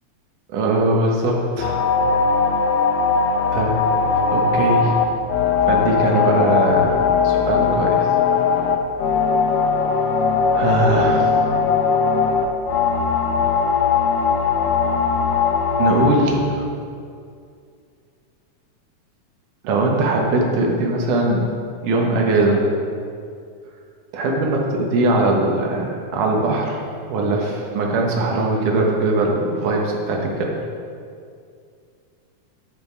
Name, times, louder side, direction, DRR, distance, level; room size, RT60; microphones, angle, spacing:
voice 1, 0.5-1.9 3.5-3.8 4.3-5.0 5.7-8.1 10.5-11.3 15.8-16.7 19.6-21.5 21.8-22.6 24.1-26.8 27.1-30.5, right 2 dB, 90° right, 0 dB, 2.8 m, -20 dB
sound 1, 1.6-16.1, left 5 dB, 70° left, 1.7 m, -19 dB
9.3 x 8.1 x 4.6 m, 2.3 s
omnidirectional pair, 3.5 m